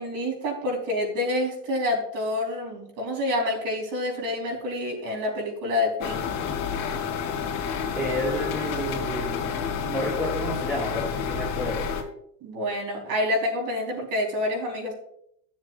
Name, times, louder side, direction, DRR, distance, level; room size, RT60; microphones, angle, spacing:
voice 1, 0.0-6.4 12.4-14.9, left 1 dB, 45° right, 0 dB, 3.9 m, -28 dB
sound 1, 6.0-12.0, left 6 dB, 45° left, 2.4 m, -29 dB
voice 2, 7.9-11.9, equal, 5° right, -6 dB, 1.9 m, -31 dB
14.0 x 7.3 x 2.4 m, 0.71 s
supercardioid pair, 150°, 46 cm